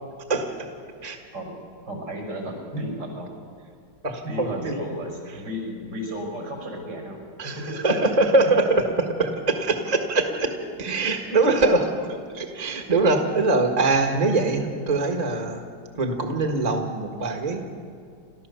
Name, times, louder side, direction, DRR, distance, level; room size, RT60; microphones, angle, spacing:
voice 1, 0.3-0.7 1.0-1.2 4.0-4.7 7.4-7.6 7.8-8.8 9.2-10.5 10.8-12.1 12.3-15.6 15.9-17.6, right 2 dB, 25° right, 3 dB, 1.6 m, -23 dB
voice 2, 1.9-3.3 4.2-7.2 7.6-7.8, equal, 80° right, 1 dB, 6.9 m, -33 dB
29.5 x 13.5 x 6.9 m, 2.2 s
omnidirectional pair, 1.9 m